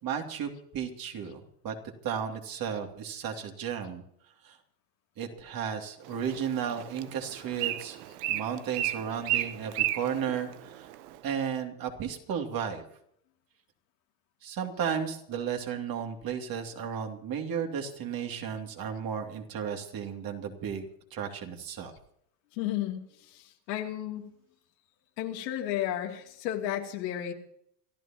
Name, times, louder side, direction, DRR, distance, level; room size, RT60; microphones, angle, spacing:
voice 1, 0.0-1.7 2.0-4.0 4.4-4.6 5.2-8.0 8.3-10.9 11.2-12.8 14.4-21.9, right 7 dB, 45° right, 3 dB, 2.8 m, -34 dB
Bird, 6.0-11.2, right 14 dB, 65° right, 1.2 m, -34 dB
voice 2, 22.5-24.3 25.2-27.3, left 12 dB, 80° left, 1 dB, 3.0 m, -33 dB
27.0 x 13.0 x 3.0 m, 0.70 s
supercardioid pair, 105°, 49 cm